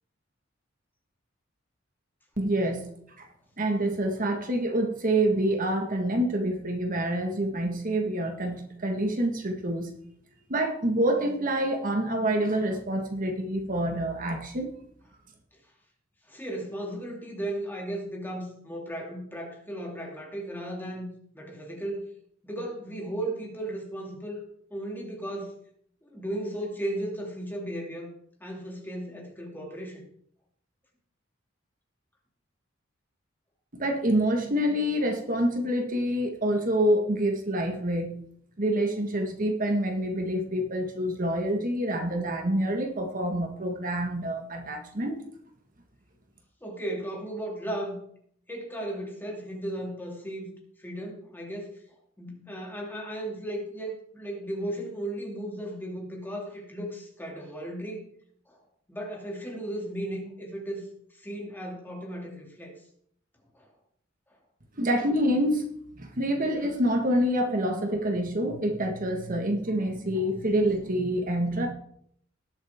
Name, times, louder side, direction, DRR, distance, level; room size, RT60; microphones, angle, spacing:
voice 1, 2.4-2.9 3.2-3.3 3.6-10.0 10.5-14.7 33.7-38.2 38.6-45.2 64.8-65.6 66.0-71.7, right 1 dB, 45° right, 3 dB, 1.7 m, -27 dB
voice 2, 16.3-22.0 22.4-24.4 24.7-25.6 26.0-28.1 28.4-30.0 46.6-48.0 48.5-50.5 50.8-51.7 52.2-58.0 58.5-58.6 58.9-60.9 61.1-62.8 63.5-63.7, right 1 dB, 10° left, 0 dB, 2.7 m, -35 dB
19.0 x 8.0 x 3.7 m, 0.65 s
head